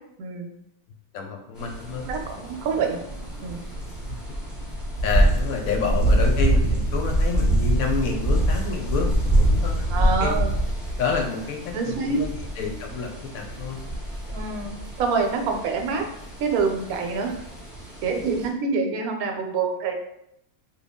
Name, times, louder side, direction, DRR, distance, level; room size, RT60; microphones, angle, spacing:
voice 1, 0.2-0.5 2.1-3.0 3.4-3.6 9.9-10.5 11.7-12.2 14.3-16.0 16.4-17.3 18.0-19.9, right 4 dB, 80° right, 3 dB, 1.0 m, -26 dB
voice 2, 1.1-2.1 4.1-4.2 5.0-10.3 11.0-13.8, left 5 dB, 75° left, 2 dB, 1.0 m, -29 dB
sound 1, 1.6-18.5, right 1 dB, ahead, 0.5 m, -25 dB
3.1 x 2.3 x 3.5 m, 0.78 s
omnidirectional pair, 1.6 m